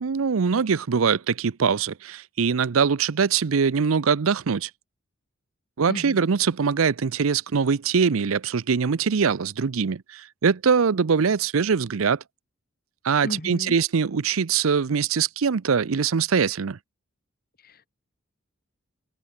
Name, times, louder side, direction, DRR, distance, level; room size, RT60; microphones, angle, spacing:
voice 1, 0.0-4.7 5.8-12.2 13.0-16.8, right 6 dB, 80° right, 0.6 m, -23 dB
voice 2, 13.2-13.8 17.6-17.9, left 1 dB, 45° left, 2.8 m, -34 dB
open air
head